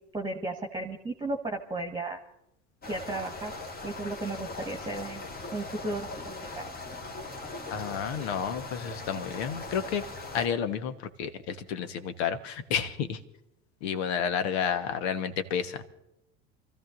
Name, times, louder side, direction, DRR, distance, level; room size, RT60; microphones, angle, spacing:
voice 1, 0.1-2.2 2.9-3.5 3.8-6.7, right 2 dB, 15° right, 2 dB, 1.5 m, -35 dB
sound 1, 2.8-10.5, left 2 dB, 30° left, 1.8 m, -40 dB
voice 2, 7.7-10.0 10.3-13.2 13.8-15.8, left 7 dB, 70° left, 10 dB, 1.3 m, -31 dB
28.5 x 14.5 x 2.6 m, 0.84 s
hypercardioid pair, 75°, 32 cm